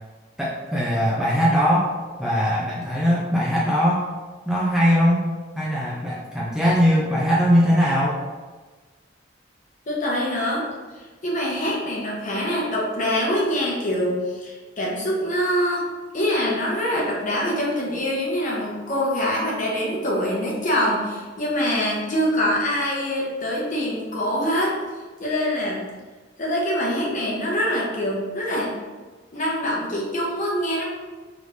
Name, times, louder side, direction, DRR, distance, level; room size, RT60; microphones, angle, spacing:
voice 1, 0.4-1.9 2.2-4.1 4.4-5.3 5.6-8.2, equal, 5° right, -7 dB, 0.6 m, -20 dB
voice 2, 9.9-10.7 11.0-15.9 16.1-24.8 25.2-25.8 26.4-28.7 29.3-30.8, equal, 45° left, -3 dB, 0.9 m, -24 dB
4.9 x 3.3 x 2.7 m, 1.3 s
head